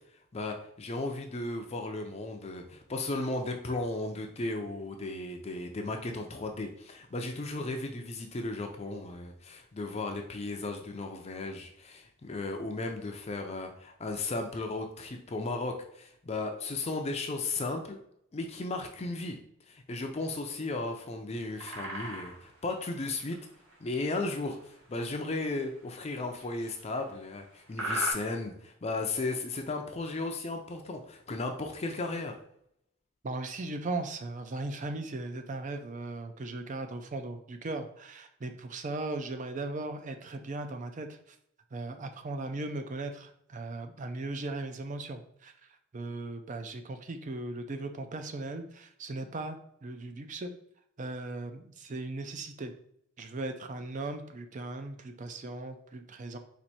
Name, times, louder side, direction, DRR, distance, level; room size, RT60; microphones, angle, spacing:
voice 1, 0.3-18.0 18.3-19.4 19.7-23.4 23.8-32.4, left 2 dB, 30° left, 4 dB, 0.5 m, -35 dB
sound 1, 21.3-22.5 23.1-23.3 23.7-24.5 25.3-25.5 26.1-27.2 27.7-28.1, right 1 dB, 65° right, 1.3 m, -36 dB
voice 2, 33.2-41.4 41.7-50.5 51.0-52.7 53.2-56.4, right 2 dB, 35° right, 7 dB, 0.4 m, -38 dB
4.4 x 2.6 x 4.1 m, 0.71 s
head